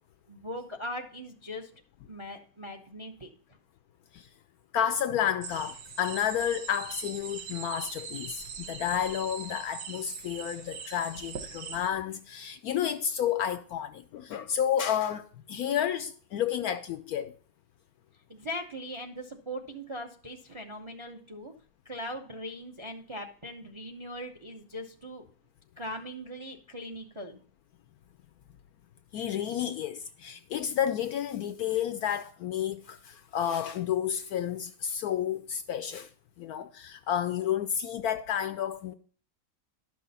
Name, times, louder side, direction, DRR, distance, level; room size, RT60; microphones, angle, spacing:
voice 1, 0.3-1.7 2.1-3.3 18.3-21.5 21.8-25.2 25.8-27.4, equal, 35° right, 0.5 m, -40 dB
voice 2, 4.7-17.3 29.1-36.1 36.4-38.9, left 9 dB, 70° left, 0.9 m, -31 dB
sound 1, 5.4-11.9, right 6 dB, 70° right, 1.7 m, -42 dB
12.0 x 6.1 x 4.1 m
omnidirectional pair, 1.9 m